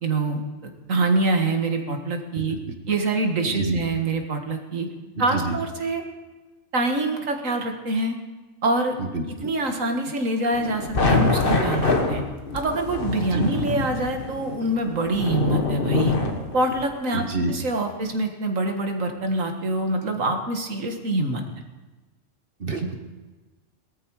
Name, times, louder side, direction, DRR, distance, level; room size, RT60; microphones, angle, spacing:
voice 1, 0.0-2.6 2.9-4.9 5.2-6.0 6.7-8.2 8.6-9.0 9.4-12.2 12.5-16.2 16.5-21.6, right 2 dB, 85° right, 4 dB, 2.1 m, -25 dB
voice 2, 3.5-3.8 5.3-5.6 9.0-9.2 13.3-13.5 17.1-17.5 22.6-22.9, right 3 dB, 45° right, 4 dB, 1.7 m, -27 dB
sound 1, 10.5-16.8, left 3 dB, 45° left, 1.6 m, -25 dB
18.5 x 13.5 x 4.8 m, 1.2 s
omnidirectional pair, 1.3 m